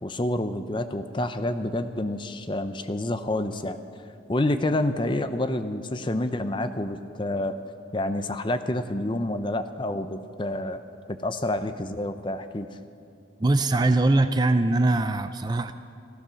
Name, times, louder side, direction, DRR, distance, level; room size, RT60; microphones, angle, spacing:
voice 1, 0.0-3.8 4.3-7.5 7.9-10.8 11.1-12.7, left 1 dB, 25° left, 9 dB, 0.6 m, -28 dB
voice 2, 13.4-15.7, right 2 dB, 20° right, 9 dB, 0.4 m, -22 dB
15.0 x 14.5 x 6.3 m, 2.5 s
head